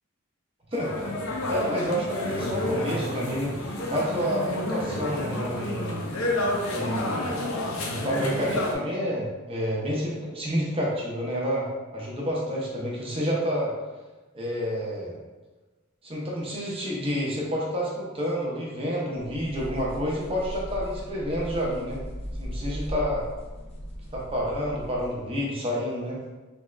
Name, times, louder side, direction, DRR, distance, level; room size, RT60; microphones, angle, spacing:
sound 1, 0.7-8.7, left 1 dB, 85° left, 0.6 m, -30 dB
voice 1, 0.7-1.1 1.5-6.0 6.7-7.3 7.9-11.7 11.9-13.7 14.3-15.2 16.0-22.0 22.4-23.2 24.1-26.2, equal, 25° right, -4 dB, 0.8 m, -29 dB
sound 2, 19.2-25.2, equal, 30° left, 0.4 m, -37 dB
3.5 x 2.4 x 3.1 m, 1.2 s
head